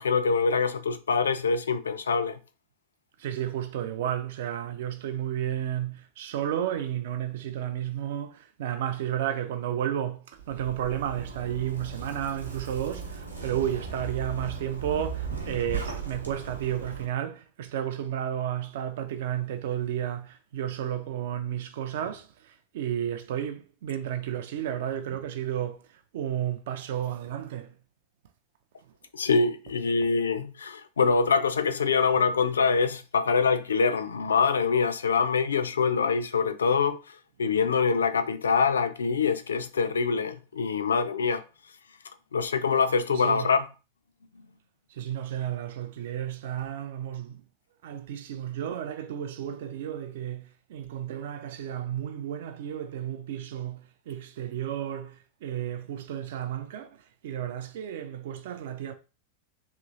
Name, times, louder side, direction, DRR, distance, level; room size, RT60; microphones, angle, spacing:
voice 1, 0.0-2.4 29.1-41.4 42.3-43.7, left 5 dB, 70° left, 0.3 m, -25 dB
voice 2, 3.2-25.9 26.1-27.7 43.1-43.5 44.9-47.4 47.8-56.9 57.2-58.9, right 10 dB, 55° right, 0.3 m, -32 dB
Zipper (clothing), 10.4-17.0, right 5 dB, 85° right, 0.8 m, -37 dB
2.9 x 2.9 x 2.6 m
figure-of-eight pair, 90°, 0 cm